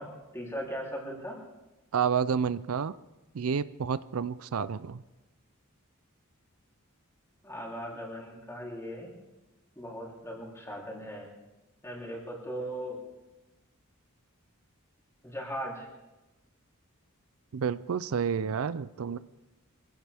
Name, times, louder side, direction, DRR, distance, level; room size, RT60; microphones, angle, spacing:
voice 1, 0.0-1.4 7.4-9.1 9.7-11.3 11.8-13.0 15.2-15.9, equal, 15° left, -2 dB, 3.4 m, -38 dB
voice 2, 1.9-2.9 3.3-5.0 17.5-19.2, right 6 dB, 75° right, 16 dB, 0.5 m, -30 dB
24.0 x 16.0 x 3.5 m, 1.0 s
head